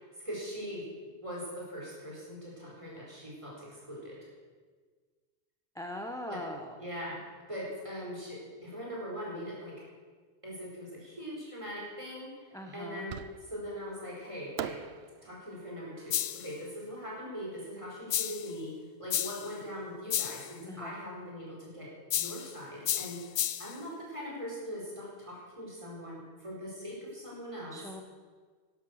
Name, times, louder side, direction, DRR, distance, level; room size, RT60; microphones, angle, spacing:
voice 1, 0.2-0.9 1.2-4.2 6.3-6.4 6.8-7.2 7.5-9.8 10.4-13.2 13.5-14.8 15.2-23.3 23.6-27.8, equal, 25° right, -4 dB, 4.5 m, -41 dB
voice 2, 5.8-6.7 12.5-13.0 20.7-20.9 27.7-28.0, left 1 dB, 5° left, 3 dB, 0.8 m, -40 dB
Fireworks, 13.1-13.8 14.6-17.7, right 10 dB, 70° right, 0.8 m, -44 dB
sound 1, 16.1-16.5 18.1-18.5 19.1-19.5 20.1-20.5 22.1-22.5 22.8-23.8, left 11 dB, 65° left, 0.7 m, -32 dB
12.0 x 11.5 x 6.3 m, 1.5 s
omnidirectional pair, 1.2 m